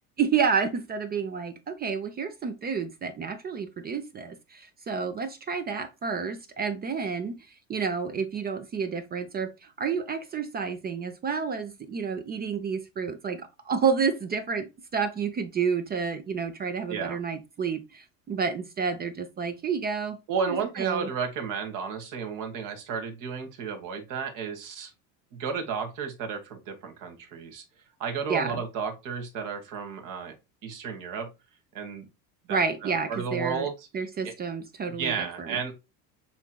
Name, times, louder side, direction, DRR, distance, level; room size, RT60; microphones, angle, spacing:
voice 1, 0.2-20.2 20.5-21.1 28.3-28.6 32.5-33.7 33.9-35.6, right 6 dB, 25° right, 0.5 m, -30 dB
voice 2, 20.3-24.9 25.3-27.6 28.0-30.3 30.6-31.3 31.7-32.1 32.5-33.9 34.2-34.3 35.0-35.7, right 6 dB, 60° right, 1.5 m, -33 dB
7.0 x 2.9 x 2.3 m
cardioid pair, 125°, 36 cm